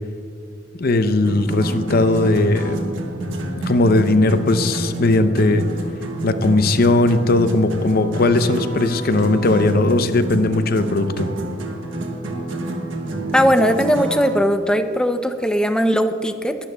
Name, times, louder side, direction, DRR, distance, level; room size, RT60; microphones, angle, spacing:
voice 1, 0.8-2.8 3.6-5.6 6.2-11.3, left 2 dB, 55° left, 10 dB, 0.6 m, -18 dB
sound 1, 1.2-14.4, right 1 dB, 90° right, 1.3 m, -28 dB
voice 2, 13.3-16.6, equal, 5° left, 8 dB, 0.5 m, -18 dB
21.5 x 11.5 x 2.3 m, 2.3 s
head